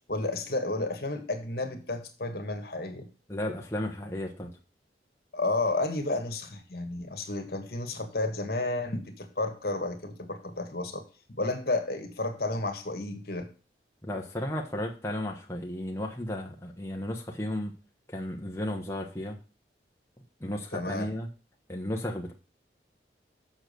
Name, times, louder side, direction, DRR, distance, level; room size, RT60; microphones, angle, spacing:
voice 1, 0.1-3.1 5.3-11.0 11.3-13.5 20.7-21.1, left 2 dB, 60° left, 1.7 m, -31 dB
voice 2, 3.3-4.5 14.0-17.7 18.1-19.4 20.4-21.3 21.7-22.3, left 1 dB, 15° left, 1.1 m, -34 dB
7.3 x 6.3 x 6.8 m
head